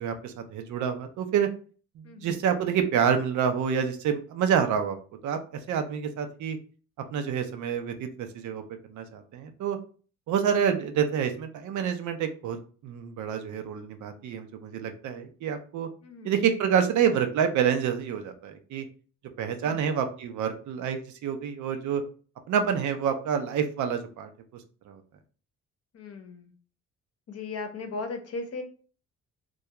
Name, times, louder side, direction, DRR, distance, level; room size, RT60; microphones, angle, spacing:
voice 1, 0.0-1.5 2.0-5.0 5.2-5.4 5.7-6.6 7.1-8.6 8.9-9.8 10.3-12.6 12.8-15.9 16.2-18.9 19.4-22.0 22.5-24.3 24.9-25.0, right 7 dB, 75° right, 7 dB, 0.6 m, -27 dB
voice 2, 2.0-2.4 16.0-16.3 19.6-19.8 25.9-26.5 27.3-28.6, left 3 dB, 55° left, 5 dB, 0.7 m, -37 dB
2.3 x 2.3 x 2.8 m, 0.39 s
cardioid pair, 90°, 30 cm